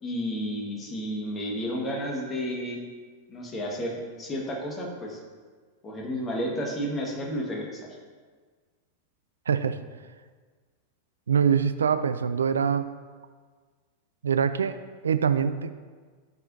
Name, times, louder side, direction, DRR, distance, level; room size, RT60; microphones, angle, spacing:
voice 1, 0.0-2.8 3.3-5.2 5.8-7.9, equal, 20° left, -1 dB, 1.5 m, -32 dB
voice 2, 9.5-9.8 11.3-12.9 14.2-15.7, right 7 dB, 70° right, 12 dB, 0.3 m, -24 dB
12.0 x 4.9 x 2.7 m, 1.5 s
figure-of-eight pair, 90°, 0 cm